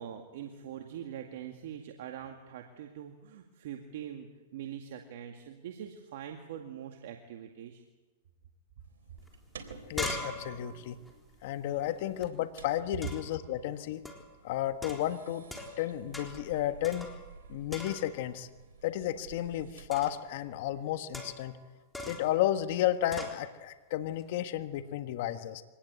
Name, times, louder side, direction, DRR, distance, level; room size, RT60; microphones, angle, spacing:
voice 1, 0.0-4.3 4.5-7.8, right 9 dB, 65° right, 4 dB, 2.1 m, -43 dB
sound 1, 8.8-20.3, right 5 dB, 80° right, 3.9 m, -53 dB
sound 2, 9.2-9.3 9.6-12.3 13.0-13.4 14.1-14.3 14.8-15.9 16.1-16.5 16.8-17.4 17.7-18.3 19.9-20.3 21.1-21.6 21.9-22.4 23.1-23.4, left 1 dB, 5° left, 3.8 m, -42 dB
voice 2, 9.9-11.0 11.4-14.0 14.4-15.4 15.8-17.1 17.5-18.5 18.8-21.6 22.1-25.6, left 12 dB, 60° left, 9 dB, 1.4 m, -32 dB
24.5 x 19.0 x 8.2 m, 1.2 s
hypercardioid pair, 125°, 0 cm